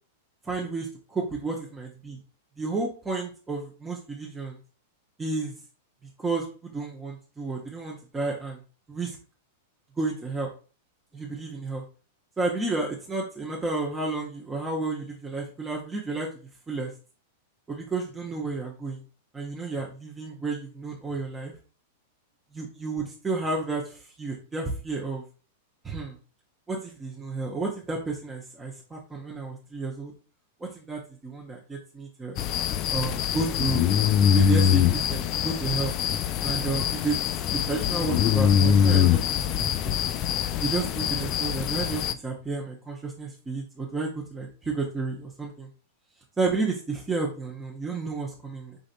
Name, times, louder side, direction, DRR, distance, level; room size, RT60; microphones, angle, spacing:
voice 1, 0.4-2.2 2.6-4.6 5.2-5.5 6.2-8.6 8.9-9.2 10.0-10.5 11.1-11.8 12.4-16.3 16.7-16.9 17.7-19.0 19.3-21.5 22.5-25.2 25.8-26.1 26.7-30.1 30.6-32.4 32.9-33.8 34.3-35.9 36.4-37.2 37.5-40.0 40.6-45.7 46.4-48.8, right 3 dB, 15° right, -1 dB, 0.9 m, -31 dB
sound 1, 32.4-42.1, left 8 dB, 40° left, 0.4 m, -23 dB
5.3 x 3.9 x 2.5 m, 0.37 s
figure-of-eight pair, 95°, 0 cm